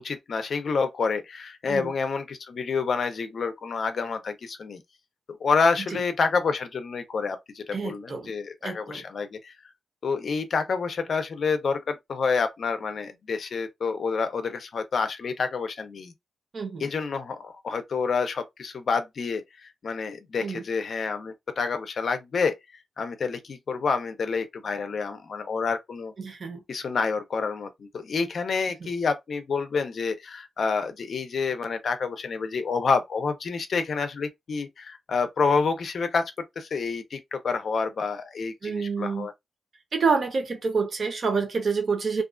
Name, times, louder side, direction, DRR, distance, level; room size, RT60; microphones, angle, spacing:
voice 1, 0.0-4.8 5.4-9.5 10.0-16.1 16.8-22.5 23.0-26.1 26.7-39.3, left 5 dB, 50° left, 0.5 m, -28 dB
voice 2, 7.7-8.3 8.6-9.0 16.5-16.9 20.4-20.6 26.2-26.6 28.8-28.9 38.6-39.3 39.9-42.2, right 5 dB, 40° right, 0.7 m, -28 dB
2.4 x 2.3 x 2.4 m
wide cardioid pair, 165°, 0 cm